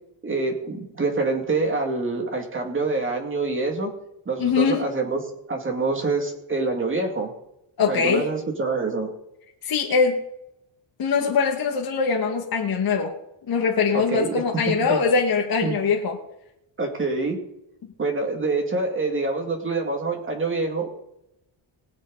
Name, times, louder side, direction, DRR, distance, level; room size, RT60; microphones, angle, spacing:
voice 1, 0.2-3.9 4.3-5.2 5.5-7.3 7.8-9.1 13.9-15.0 15.6-15.8 16.8-17.4 18.0-21.0, right 3 dB, 25° right, 3 dB, 2.5 m, -26 dB
voice 2, 4.4-4.9 7.8-8.3 9.6-10.2 11.0-13.1 13.5-16.2, left 5 dB, 50° left, 0 dB, 1.8 m, -22 dB
20.5 x 8.3 x 4.1 m, 0.84 s
cardioid pair, 155°, 47 cm